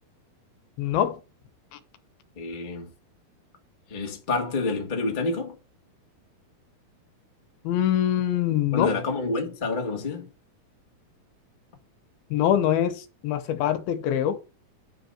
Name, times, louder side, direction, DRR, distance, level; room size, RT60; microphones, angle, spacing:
voice 1, 0.8-1.2 1.7-1.8 7.6-8.9 12.3-14.4, left 10 dB, 80° left, 2.8 m, -24 dB
voice 2, 2.4-2.9 3.9-5.5 8.7-10.3, left 3 dB, 45° left, 0.6 m, -28 dB
9.9 x 4.0 x 6.4 m
omnidirectional pair, 4.4 m